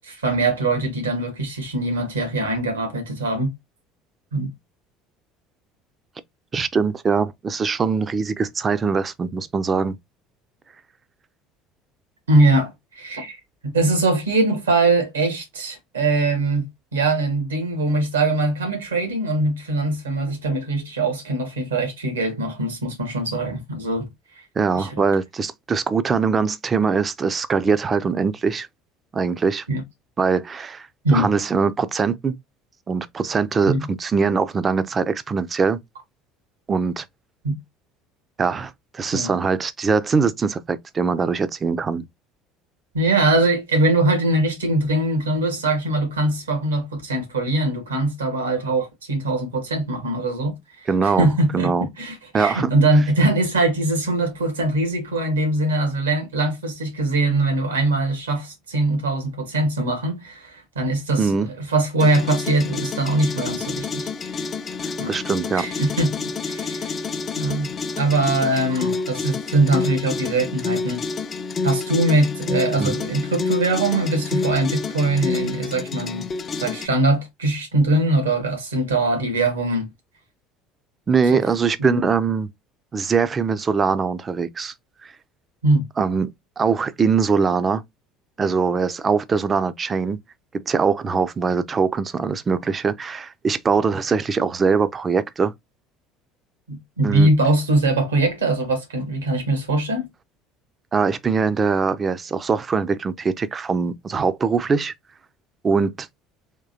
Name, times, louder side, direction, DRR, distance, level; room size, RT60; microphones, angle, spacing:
voice 1, 0.2-3.5 4.3-4.5 12.3-13.4 13.6-16.7 16.9-24.1 24.7-24.9 29.7-29.8 31.0-31.3 33.7-33.9 37.4-37.6 39.1-39.3 42.9-64.1 65.0-65.1 65.5-67.0 67.4-67.7 68.0-71.0 71.6-76.3 76.6-79.9 81.3-81.4 81.8-82.0 85.6-85.9 96.7-100.1, right 2 dB, 85° right, 1.6 m, -22 dB
voice 2, 6.5-10.0 24.6-28.7 29.1-29.7 30.2-32.4 32.9-35.8 36.7-37.1 38.4-42.0 50.9-51.3 51.5-51.9 52.3-52.7 61.2-61.5 64.8-65.7 72.8-73.0 81.1-82.5 82.9-84.7 86.0-86.3 86.6-87.8 88.4-90.2 90.5-95.5 97.0-97.3 100.9-104.9 105.6-106.1, right 5 dB, 30° right, 0.6 m, -22 dB
sound 1, 62.0-76.9, left 4 dB, 35° left, 0.6 m, -29 dB
3.7 x 3.0 x 2.8 m
hypercardioid pair, 65°, 0 cm